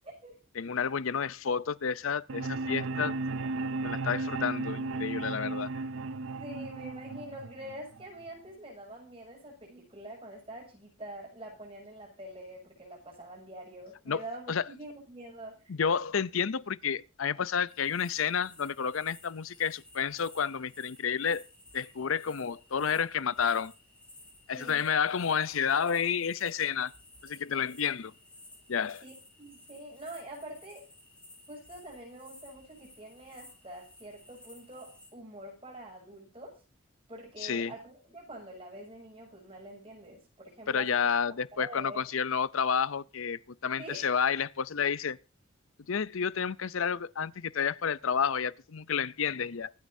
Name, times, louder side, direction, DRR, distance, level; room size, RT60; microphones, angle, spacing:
voice 1, 0.0-0.4 6.2-15.6 24.5-24.9 29.0-30.9 31.5-36.6 37.1-41.0 41.3-42.0 43.8-44.1, right 1 dB, 25° right, 7.1 m, -45 dB
voice 2, 0.6-3.2 3.8-5.7 14.1-14.2 14.5-14.6 15.7-21.4 21.7-23.7 24.5-26.9 27.2-28.1 28.7-29.0 37.4-37.7 40.7-45.2 45.9-49.7, left 7 dB, 75° left, 0.6 m, -30 dB
sound 1, 2.3-8.3, right 3 dB, 70° right, 0.6 m, -35 dB
sound 2, 17.7-35.1, left 1 dB, 5° left, 4.1 m, -56 dB
25.0 x 9.4 x 2.7 m
head